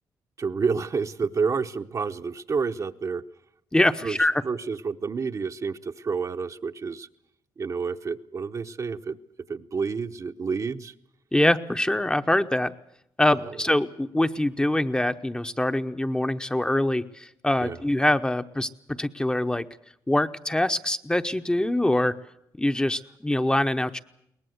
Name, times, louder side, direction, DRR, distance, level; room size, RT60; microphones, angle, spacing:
voice 1, 0.4-3.2 4.0-4.2 4.4-7.1 7.6-9.2 9.5-10.9 13.4-13.5 17.6-17.8, right 5 dB, 45° right, 7 dB, 0.9 m, -29 dB
voice 2, 3.7-4.4 11.3-12.7 13.2-19.7 20.1-22.1 22.6-24.0, left 1 dB, 10° left, 8 dB, 0.9 m, -24 dB
22.5 x 19.0 x 7.9 m, 0.78 s
cardioid pair, 75°, 8 cm